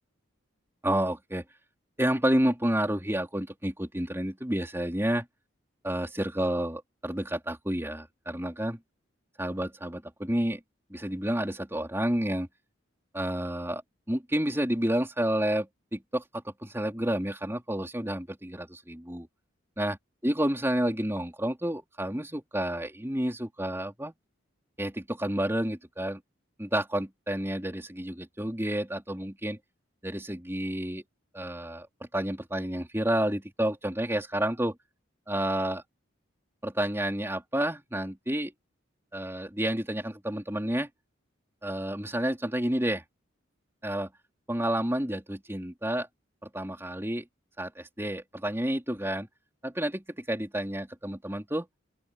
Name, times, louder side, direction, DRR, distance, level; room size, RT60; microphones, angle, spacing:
voice 1, 0.8-1.4 2.0-5.3 5.8-8.8 9.4-10.6 10.9-12.5 13.1-13.8 14.1-19.3 19.8-20.0 20.2-24.1 24.8-26.2 26.6-29.6 30.0-31.0 31.3-31.9 32.1-34.8 35.3-35.8 36.6-38.5 39.1-40.9 41.6-43.0 43.8-44.1 44.5-46.1 46.4-47.2 47.6-49.3 49.6-51.7, right 1 dB, 10° right, 4.1 m, -30 dB
open air
head